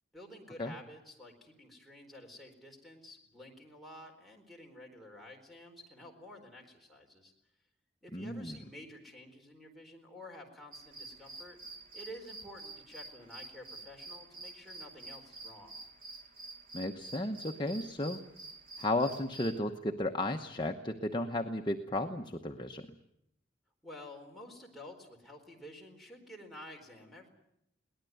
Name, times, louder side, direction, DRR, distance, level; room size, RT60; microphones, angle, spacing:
voice 1, 0.1-7.3 8.0-11.6 11.9-15.8 23.8-27.3, left 1 dB, ahead, -1 dB, 4.2 m, -51 dB
voice 2, 8.1-8.6 16.7-18.2 18.8-22.9, left 1 dB, 25° left, 3 dB, 1.0 m, -34 dB
sound 1, 10.7-19.6, right 3 dB, 50° right, 2.4 m, -49 dB
22.5 x 18.5 x 9.4 m, 0.78 s
head